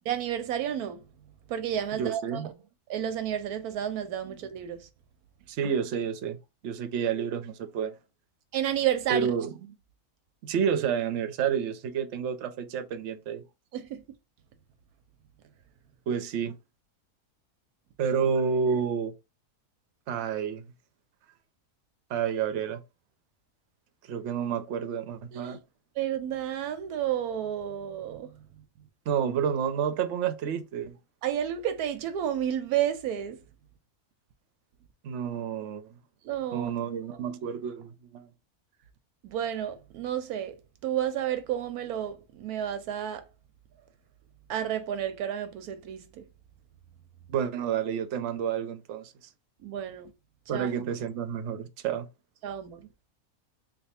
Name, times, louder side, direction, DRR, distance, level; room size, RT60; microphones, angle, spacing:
voice 1, 0.1-1.0 1.5-2.4 2.9-4.9 8.5-9.3 13.7-14.0 25.3-25.5 26.0-28.4 31.2-33.4 36.2-36.7 39.2-40.6 40.8-43.2 44.5-46.2 49.6-50.1 50.5-50.7 52.4-52.9, right 10 dB, 85° right, 1.1 m, -31 dB
voice 2, 1.9-2.5 4.3-4.4 5.5-6.4 6.6-7.9 9.1-9.5 10.4-13.4 16.1-16.5 18.0-19.1 20.1-20.6 22.1-22.8 24.1-25.6 29.1-31.0 35.0-36.0 36.5-38.3 47.3-49.1 50.5-52.1, right 7 dB, 60° right, 0.8 m, -29 dB
3.3 x 2.3 x 4.2 m
omnidirectional pair, 1.6 m